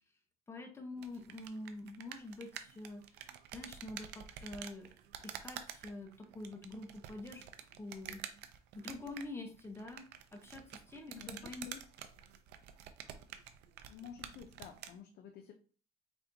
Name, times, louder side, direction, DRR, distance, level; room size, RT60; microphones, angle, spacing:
voice 1, 0.5-3.0 3.5-4.9 5.2-7.5 7.8-8.2 8.7-10.0 10.3-11.7, left 2 dB, 15° left, 3 dB, 0.9 m, -46 dB
sound 1, 1.0-15.0, right 10 dB, 80° right, 0.5 m, -49 dB
voice 2, 11.1-11.8 13.9-15.5, left 8 dB, 70° left, 3 dB, 0.6 m, -51 dB
4.3 x 3.3 x 2.7 m, 0.39 s
cardioid pair, 110°, 17 cm